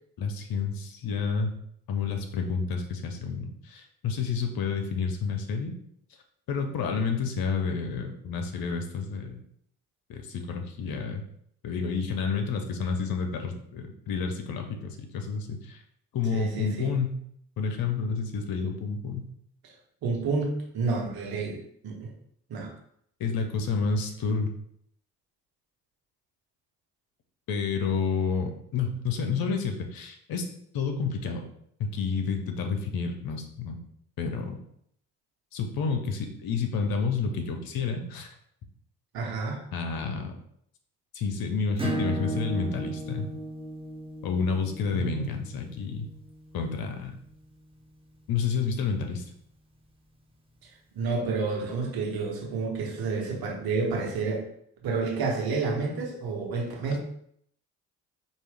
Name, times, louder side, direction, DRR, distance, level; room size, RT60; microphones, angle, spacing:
voice 1, 0.2-1.5 1.9-5.8 6.5-9.4 10.1-11.2 11.6-15.8 16.1-17.2 17.6-19.3 23.2-24.5 27.5-30.5 30.7-31.5 31.8-33.8 34.2-34.6 35.5-38.3 39.7-40.3 41.1-43.3 44.2-46.1 46.5-47.1 48.3-49.2, left 5 dB, 55° left, 4 dB, 0.9 m, -30 dB
voice 2, 16.3-16.9 20.0-21.6 21.8-22.1 22.5-22.7 39.1-39.6 44.9-45.2 50.9-54.4 54.8-57.0, right 4 dB, 55° right, 0 dB, 1.3 m, -29 dB
Acoustic guitar / Strum, 41.8-47.0, right 2 dB, 15° right, 1.1 m, -36 dB
4.5 x 2.6 x 3.5 m, 0.68 s
hypercardioid pair, 50°, 42 cm